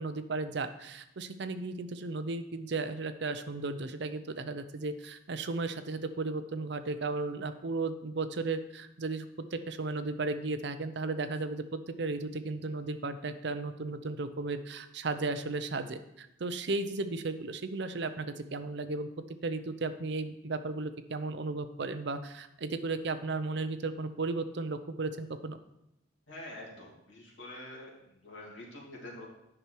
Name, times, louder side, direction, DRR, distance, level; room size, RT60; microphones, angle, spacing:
voice 1, 0.0-9.3 9.5-19.1 19.4-25.6, right 3 dB, 65° right, 10 dB, 0.6 m, -35 dB
voice 2, 26.3-29.3, left 1 dB, 85° left, -3 dB, 2.8 m, -46 dB
9.8 x 6.0 x 4.6 m, 0.82 s
head